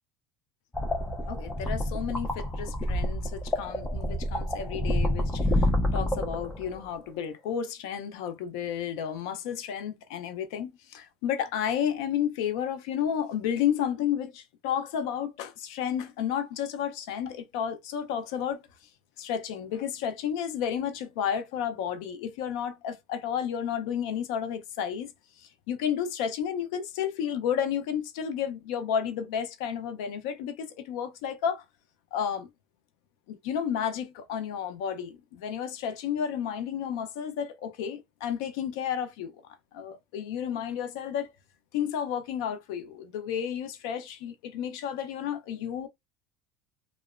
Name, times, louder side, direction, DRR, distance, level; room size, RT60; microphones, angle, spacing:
sound 1, 0.7-6.8, left 1 dB, 10° left, 0.4 m, -28 dB
voice 1, 1.3-18.6 19.2-25.1 25.4-31.6 32.1-32.5 33.3-39.3 39.7-41.3 41.7-45.9, left 8 dB, 70° left, 0.5 m, -32 dB
2.9 x 2.0 x 2.4 m
cardioid pair, 175°, 3 cm